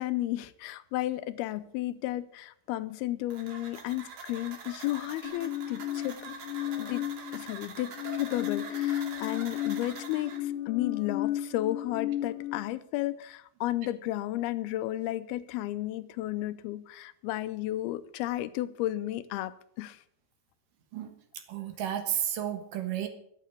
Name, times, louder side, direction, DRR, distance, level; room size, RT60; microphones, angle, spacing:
voice 1, 0.0-6.3 6.8-20.0, left 15 dB, 85° left, 2.6 m, -33 dB
sound 1, 3.3-10.4, right 5 dB, 50° right, 3.0 m, -44 dB
sound 2, 5.2-7.5 7.9-12.6, left 13 dB, 65° left, 2.1 m, -34 dB
voice 2, 21.5-23.1, right 10 dB, 65° right, 2.9 m, -32 dB
13.0 x 9.1 x 8.2 m
omnidirectional pair, 4.4 m